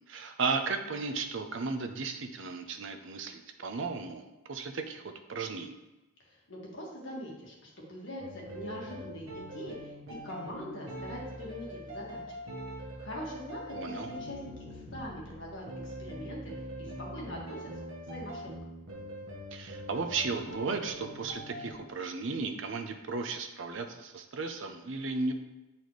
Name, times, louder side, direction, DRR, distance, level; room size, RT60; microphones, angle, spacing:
voice 1, 0.1-5.8 13.7-14.1 19.5-25.3, right 4 dB, 55° right, 6 dB, 0.5 m, -35 dB
voice 2, 6.5-10.0 10.2-12.4 13.0-14.4 14.7-17.7 18.1-18.4, equal, 55° left, -3 dB, 1.7 m, -42 dB
sound 1, 8.2-21.7, equal, 80° right, 1.4 m, -43 dB
8.5 x 4.0 x 3.1 m, 1.0 s
head